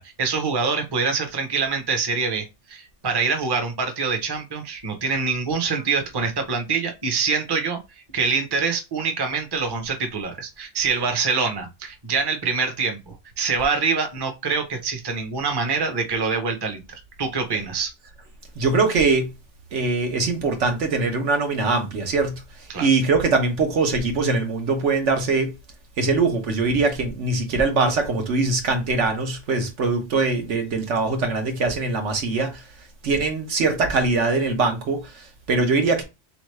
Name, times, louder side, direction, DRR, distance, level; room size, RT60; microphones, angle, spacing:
voice 1, 0.0-7.8 8.1-17.9 22.7-22.9, right 5 dB, 25° right, 0.6 m, -25 dB
voice 2, 18.5-19.3 19.7-25.5 26.0-32.6 33.0-36.0, right 3 dB, 80° right, 1.3 m, -22 dB
3.5 x 3.1 x 3.1 m
omnidirectional pair, 1.2 m